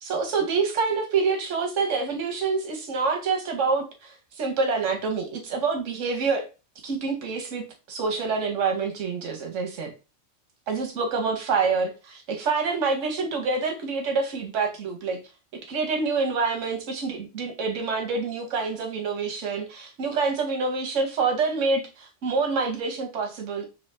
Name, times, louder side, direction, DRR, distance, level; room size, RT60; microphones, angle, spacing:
voice 1, 0.0-6.5 6.8-9.9 10.7-15.2 15.7-23.6, right 4 dB, 90° right, 1.2 m, -27 dB
5.4 x 3.0 x 3.2 m
omnidirectional pair, 1.2 m